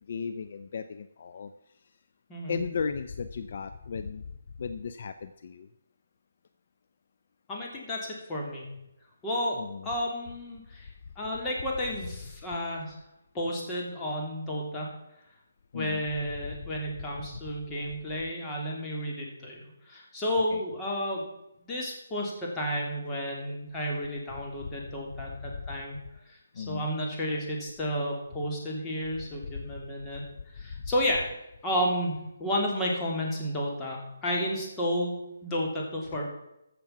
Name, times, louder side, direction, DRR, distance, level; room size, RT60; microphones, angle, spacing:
voice 1, 0.1-1.5 2.5-4.2 4.6-5.7 9.5-9.9 15.7-16.0 20.5-20.6 26.6-26.9, left 5 dB, 55° left, 10 dB, 0.6 m, -35 dB
voice 2, 7.5-8.7 9.2-10.9 11.2-13.0 13.3-14.9 15.7-19.6 19.9-21.2 21.7-26.0 26.3-30.2 30.5-31.3 31.6-32.1 32.4-36.2, equal, 15° left, -3 dB, 3.0 m, -32 dB
14.5 x 6.9 x 6.0 m, 0.87 s
hypercardioid pair, 160°, 0 cm